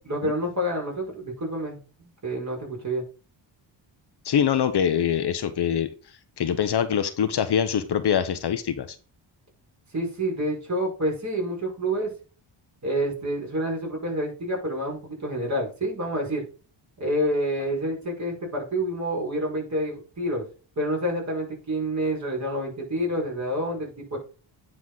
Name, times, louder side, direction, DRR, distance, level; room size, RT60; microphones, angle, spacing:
voice 1, 0.0-1.8 2.2-3.1 9.9-12.1 12.8-16.4 17.0-20.4 20.8-24.2, equal, 35° right, -1 dB, 5.0 m, -28 dB
voice 2, 4.2-5.9 6.4-9.0, left 8 dB, 55° left, 10 dB, 1.0 m, -24 dB
9.7 x 4.6 x 4.0 m, 0.35 s
cardioid pair, 95°, 47 cm